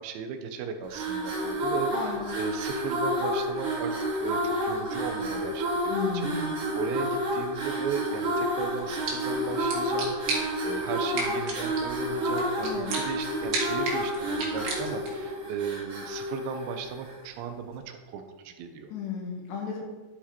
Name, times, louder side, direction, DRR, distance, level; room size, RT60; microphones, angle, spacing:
voice 1, 0.0-6.3 6.7-18.9, right 7 dB, 85° right, 7 dB, 3.2 m, -36 dB
sound 1, 0.8-17.3, equal, 50° right, 3.5 m, -30 dB
voice 2, 1.9-2.2 5.9-6.6 12.6-12.9 18.9-19.8, left 5 dB, 70° left, 0 dB, 3.9 m, -34 dB
sound 2, 8.8-15.3, right 3 dB, 70° right, 4.2 m, -36 dB
11.5 x 7.2 x 4.4 m, 1.3 s
omnidirectional pair, 5.2 m